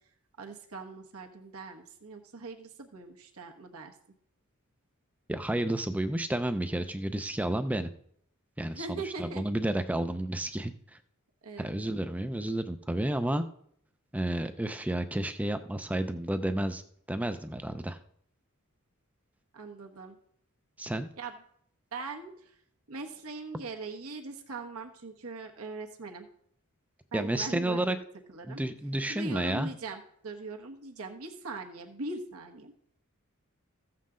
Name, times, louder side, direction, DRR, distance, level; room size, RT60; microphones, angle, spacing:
voice 1, 0.4-4.0 8.7-9.4 11.4-11.7 19.5-20.2 21.2-21.3 21.9-22.6 22.9-26.3 27.1-27.8 28.3-28.6 29.1-32.7, right 3 dB, 75° right, 3 dB, 1.2 m, -41 dB
voice 2, 5.3-7.9 8.6-11.0 11.6-13.5 14.1-16.8 17.1-18.0 20.8-21.1 27.1-28.0 28.4-29.7, right 1 dB, 5° right, 9 dB, 0.4 m, -31 dB
15.0 x 7.4 x 3.8 m, 0.66 s
head